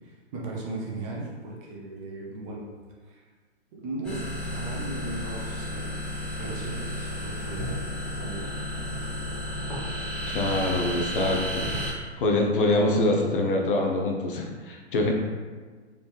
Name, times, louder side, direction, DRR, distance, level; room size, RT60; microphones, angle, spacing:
voice 1, 0.0-2.6 3.0-3.3 3.8-4.2 4.5-6.0 6.4-8.5 15.0-15.1, right 2 dB, 30° right, -3 dB, 0.9 m, -37 dB
sound 1, 4.0-11.9, left 1 dB, ahead, 1.1 m, -32 dB
voice 2, 10.3-11.6 12.2-15.1, left 2 dB, 50° left, 1 dB, 0.7 m, -24 dB
4.1 x 3.4 x 3.2 m, 1.5 s
figure-of-eight pair, 120°, 35 cm